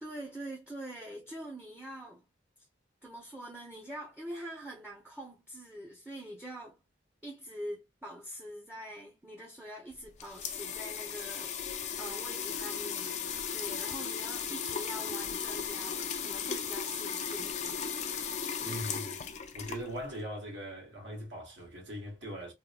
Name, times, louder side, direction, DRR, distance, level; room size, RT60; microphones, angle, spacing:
voice 1, 0.0-2.3 3.0-6.8 7.2-11.5 12.0-13.2 13.5-17.8 18.1-18.8, right 1 dB, 5° right, 0.6 m, -44 dB
sound 1, 9.9-20.2, left 7 dB, 40° left, 0.4 m, -36 dB
voice 2, 18.6-19.2 19.5-22.5, equal, 70° right, 1.6 m, -40 dB
3.5 x 2.1 x 2.3 m
head